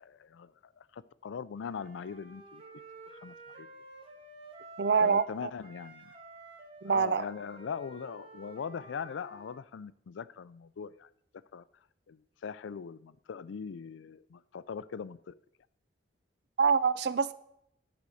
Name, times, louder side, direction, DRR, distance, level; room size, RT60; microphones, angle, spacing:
voice 1, 0.0-2.6 3.1-3.7 5.0-6.1 6.8-11.1 11.5-11.6 12.1-15.3, left 6 dB, 85° left, 17 dB, 0.4 m, -41 dB
Wind instrument woodwind instrument, 1.6-5.3 5.6-9.6, right 3 dB, 30° right, 1.1 m, -51 dB
voice 2, 4.8-5.2 6.8-7.2 16.6-17.3, right 5 dB, 65° right, 15 dB, 0.4 m, -25 dB
11.5 x 4.0 x 6.3 m, 0.76 s
head